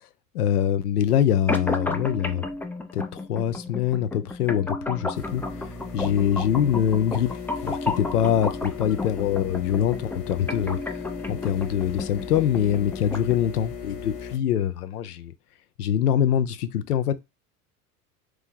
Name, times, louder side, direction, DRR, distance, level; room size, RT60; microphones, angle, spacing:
voice 1, 0.3-2.4 2.9-5.6 5.9-7.3 7.6-10.8 11.3-15.3 15.8-17.2, left 9 dB, 80° left, 0.7 m, -24 dB
sound 1, 1.5-13.5, left 2 dB, 5° left, 0.3 m, -33 dB
sound 2, 5.1-14.4, left 6 dB, 50° left, 1.3 m, -37 dB
3.3 x 3.1 x 3.6 m
hypercardioid pair, 80°, 45 cm